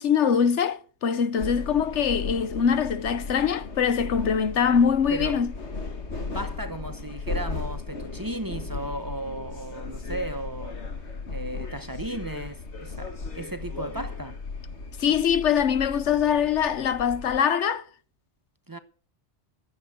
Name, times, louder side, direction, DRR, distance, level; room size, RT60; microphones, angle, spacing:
voice 1, 0.0-5.5 15.0-17.8, left 7 dB, 90° left, 1.2 m, -23 dB
sound 1, 1.4-17.4, left 4 dB, 75° left, 2.0 m, -36 dB
voice 2, 5.1-5.4 6.3-10.7 11.3-14.4 18.7-18.8, right 1 dB, 20° right, 0.8 m, -35 dB
14.5 x 8.1 x 6.6 m
omnidirectional pair, 1.2 m